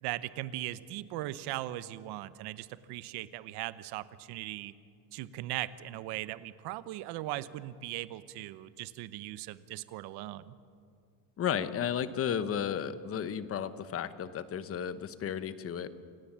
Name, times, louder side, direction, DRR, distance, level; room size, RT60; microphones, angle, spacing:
voice 1, 0.0-4.7 5.1-10.5, right 15 dB, 60° right, 15 dB, 0.9 m, -39 dB
voice 2, 11.4-15.9, left 8 dB, 30° left, 13 dB, 1.0 m, -33 dB
28.0 x 17.0 x 7.5 m, 2.3 s
cardioid pair, 150°, 43 cm